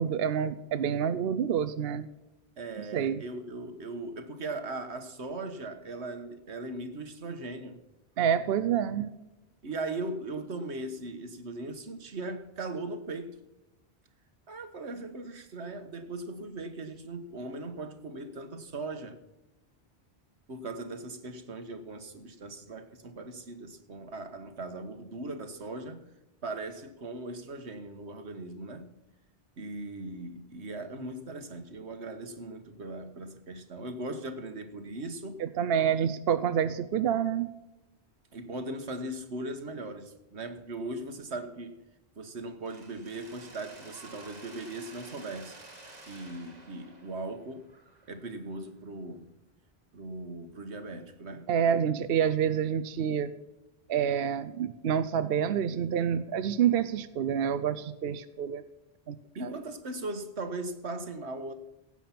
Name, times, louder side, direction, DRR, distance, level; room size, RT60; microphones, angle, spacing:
voice 1, 0.0-2.1 2.9-3.2 8.2-9.1 35.4-37.5 51.5-53.3 53.9-58.6 59.1-59.2 59.4-59.5, right 8 dB, 65° right, 0.8 m, -28 dB
voice 2, 2.6-7.8 9.6-13.4 14.5-19.2 20.5-26.0 26.4-28.9 29.6-35.4 35.9-36.0 38.3-41.7 42.2-45.6 46.1-47.7 48.1-49.3 49.9-51.5 59.3-61.5, right 2 dB, 85° right, 1.6 m, -39 dB
Mechanisms, 42.6-48.5, right 2 dB, 40° right, 2.1 m, -51 dB
16.5 x 8.6 x 5.9 m
omnidirectional pair, 1.1 m